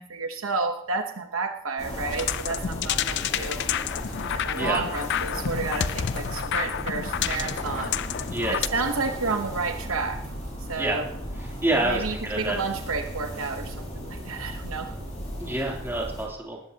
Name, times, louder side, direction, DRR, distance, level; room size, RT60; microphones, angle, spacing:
voice 1, 0.0-3.6 4.3-8.0 8.5-10.2 10.6-11.1 11.8-14.9, right 4 dB, 70° right, 6 dB, 1.0 m, -31 dB
sound 1, 1.8-16.2, equal, 35° left, 7.0 m, -36 dB
sound 2, 2.1-8.7, left 9 dB, 55° left, 0.4 m, -30 dB
voice 2, 4.5-4.8 8.2-8.6 10.8-11.0 11.6-12.6 15.4-16.6, right 1 dB, 10° right, -3 dB, 3.0 m, -27 dB
19.0 x 14.5 x 2.9 m, 0.75 s
head